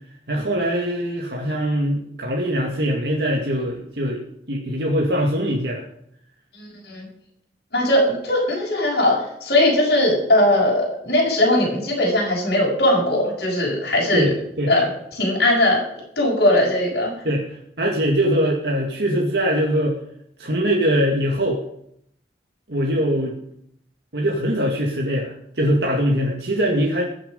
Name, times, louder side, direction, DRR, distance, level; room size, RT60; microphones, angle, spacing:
voice 1, 0.3-4.2 4.5-5.8 14.1-14.7 17.2-20.0 20.4-21.6 22.7-23.3 24.1-27.0, equal, 70° right, -1 dB, 2.2 m, -22 dB
voice 2, 6.6-7.0 7.7-9.2 9.4-14.3 14.7-14.9 15.1-15.8 16.2-17.1, left 1 dB, 60° left, -5 dB, 6.7 m, -19 dB
21.5 x 7.7 x 5.3 m, 0.73 s
head